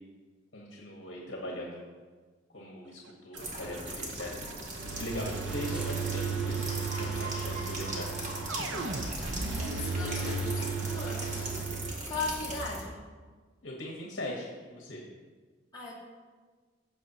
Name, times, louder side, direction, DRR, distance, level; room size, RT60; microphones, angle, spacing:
voice 1, 0.5-1.8 2.5-4.5 4.8-8.3 8.6-8.9 13.6-15.0, left 1 dB, 65° left, -2 dB, 1.4 m, -40 dB
sound 1, 3.3-12.8, right 1 dB, 40° right, 1.8 m, -39 dB
sound 2, 3.3-11.9, right 5 dB, 80° right, 0.7 m, -35 dB
sound 3, 5.4-11.6, left 1 dB, 5° right, 1.1 m, -45 dB
voice 2, 9.5-11.5 12.1-13.0 15.7-16.0, left 3 dB, 25° left, -7 dB, 2.2 m, -38 dB
15.5 x 6.8 x 3.0 m, 1.4 s
head